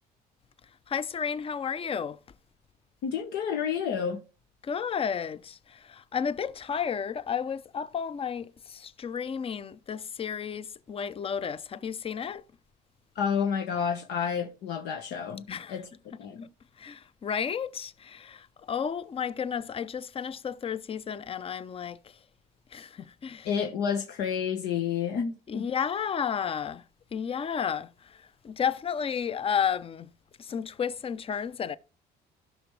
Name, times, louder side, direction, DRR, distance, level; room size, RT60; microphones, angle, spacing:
voice 1, 0.9-2.2 4.6-12.4 15.5-15.8 16.1-16.2 16.8-22.2 22.7-23.6 25.5-26.8 27.1-30.1 30.4-31.8, left 7 dB, 35° left, 0.7 m, -32 dB
voice 2, 3.0-4.2 13.1-15.9 16.2-16.5 23.4-25.6, left 7 dB, 80° left, 1.3 m, -30 dB
17.0 x 6.0 x 3.3 m
cardioid pair, 110°, 17 cm